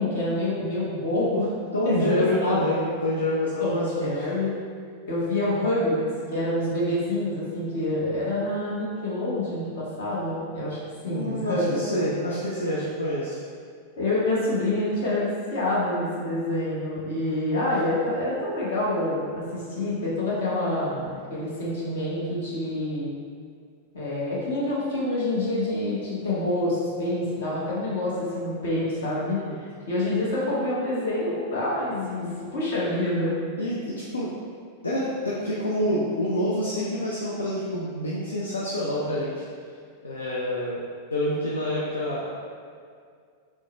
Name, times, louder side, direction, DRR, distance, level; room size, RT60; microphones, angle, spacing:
voice 1, 0.0-1.5 1.8-2.8 3.6-4.5 5.1-6.0 6.3-10.8 11.0-11.8 14.0-23.1 23.9-33.3, left 1 dB, 60° left, -7 dB, 1.0 m, -27 dB
voice 2, 1.7-4.3 11.1-13.4 29.5-29.6 33.6-34.4 34.8-39.4 40.0-40.8 41.1-42.2, left 1 dB, 75° left, -7 dB, 0.4 m, -27 dB
3.6 x 2.1 x 3.0 m, 2.2 s
figure-of-eight pair, 90°, 0 cm